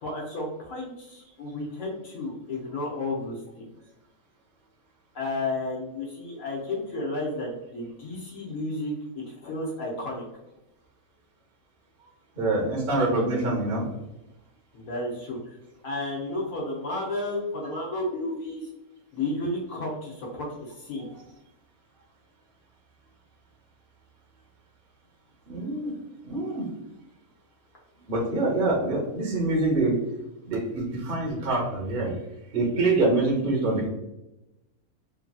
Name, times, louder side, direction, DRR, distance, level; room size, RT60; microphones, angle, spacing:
voice 1, 0.0-3.7 5.1-10.3 14.7-15.5 15.8-18.7 19.1-21.1, left 2 dB, 70° left, -3 dB, 1.1 m, -32 dB
voice 2, 12.4-13.9 21.0-21.1 25.5-25.9 26.3-26.6 28.1-29.9 30.5-32.1 32.5-33.9, right 2 dB, 45° right, -2 dB, 0.8 m, -25 dB
3.2 x 2.5 x 2.3 m, 0.92 s
omnidirectional pair, 1.5 m